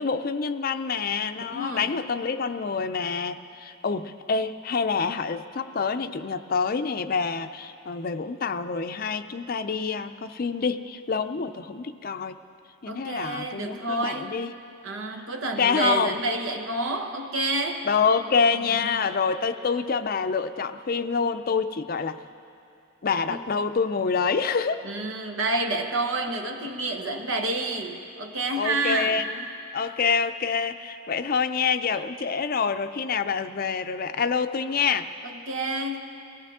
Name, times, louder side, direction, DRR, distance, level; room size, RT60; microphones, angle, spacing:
voice 1, 0.0-12.4 12.8-14.5 15.4-16.2 17.8-22.2 23.0-24.8 28.6-29.4 29.7-35.1, left 5 dB, 45° left, 10 dB, 0.5 m, -27 dB
voice 2, 1.5-1.9 12.9-14.4 14.8-17.8 18.7-19.1 23.3-23.4 24.8-29.2 35.2-36.0, right 2 dB, 75° right, 4 dB, 1.3 m, -29 dB
23.0 x 17.0 x 3.6 m, 2.6 s
head